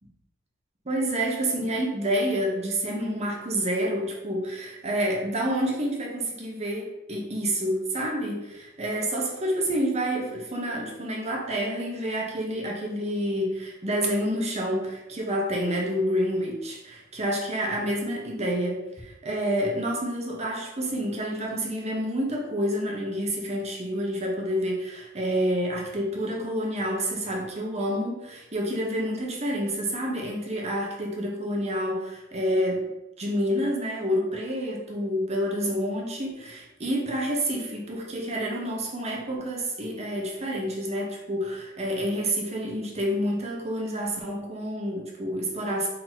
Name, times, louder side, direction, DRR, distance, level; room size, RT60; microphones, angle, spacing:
voice 1, 0.8-32.8 33.2-45.9, equal, 35° right, -1 dB, 0.9 m, -28 dB
3.9 x 2.8 x 4.4 m, 0.95 s
head